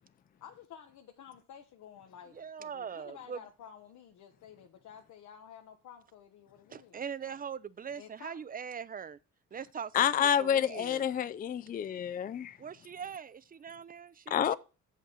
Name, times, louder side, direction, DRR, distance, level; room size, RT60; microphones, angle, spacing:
voice 1, 0.4-7.4 8.0-8.4, left 8 dB, 75° left, 1.1 m, -52 dB
voice 2, 2.3-3.4 6.7-9.2 9.5-11.0 12.6-14.6, right 7 dB, 30° right, 0.5 m, -42 dB
voice 3, 9.9-12.6 14.3-14.6, left 9 dB, 30° left, 0.4 m, -28 dB
7.2 x 5.7 x 6.1 m
cardioid pair, 90°, 30 cm